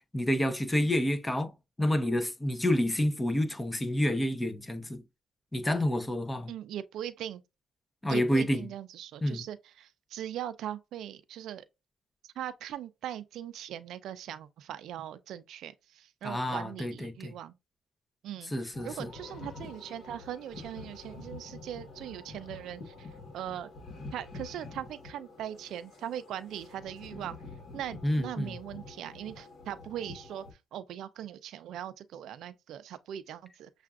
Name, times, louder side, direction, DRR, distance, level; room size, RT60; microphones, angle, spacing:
voice 1, 0.1-1.5 1.8-5.0 5.5-6.5 8.0-8.6 9.2-9.4 16.2-17.3 18.5-18.9 28.0-28.5, left 1 dB, 15° left, 0.7 m, -28 dB
voice 2, 6.5-7.4 8.1-11.6 12.2-17.5 18.2-23.7 24.1-27.4 27.7-33.7, right 11 dB, 80° right, 0.4 m, -40 dB
sound 1, 18.7-30.5, left 3 dB, 55° left, 1.4 m, -47 dB
6.6 x 2.4 x 2.4 m
cardioid pair, 90°, 0 cm